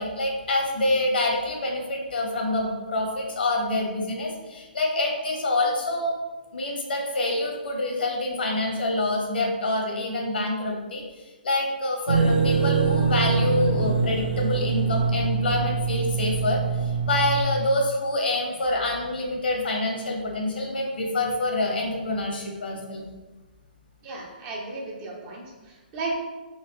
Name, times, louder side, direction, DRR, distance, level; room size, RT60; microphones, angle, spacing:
voice 1, 0.0-6.2 6.5-11.0 11.4-16.6 17.1-23.0, left 2 dB, 75° left, 0 dB, 1.1 m, -26 dB
sound 1, 12.1-17.4, right 5 dB, 75° right, 0.8 m, -24 dB
voice 2, 24.0-26.2, right 2 dB, 25° right, -2 dB, 0.7 m, -34 dB
4.1 x 3.2 x 3.0 m, 1.2 s
hypercardioid pair, 155°, 5 cm